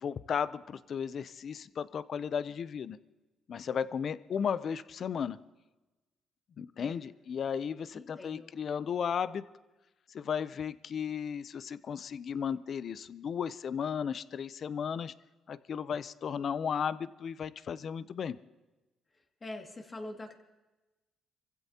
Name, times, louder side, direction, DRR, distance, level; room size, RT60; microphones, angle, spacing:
voice 1, 0.0-3.0 3.5-5.4 6.6-9.4 10.1-15.1 15.5-18.4, left 7 dB, 55° left, 16 dB, 0.6 m, -35 dB
voice 2, 7.9-8.5 19.4-20.3, left 2 dB, 30° left, 2 dB, 2.3 m, -44 dB
25.5 x 15.5 x 2.9 m, 1.1 s
cardioid pair, 90°, 0 cm